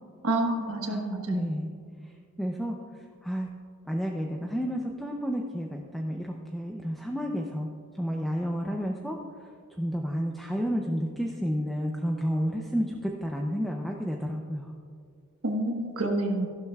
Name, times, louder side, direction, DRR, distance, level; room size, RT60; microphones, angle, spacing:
voice 1, 0.2-1.6 15.4-16.5, right 1 dB, 85° right, 2 dB, 1.3 m, -28 dB
voice 2, 0.9-1.7 2.0-2.1 2.4-2.8 3.2-3.5 3.9-7.7 8.0-9.2 9.8-14.7, equal, ahead, 0 dB, 0.5 m, -31 dB
15.0 x 12.0 x 2.3 m, 2.1 s
head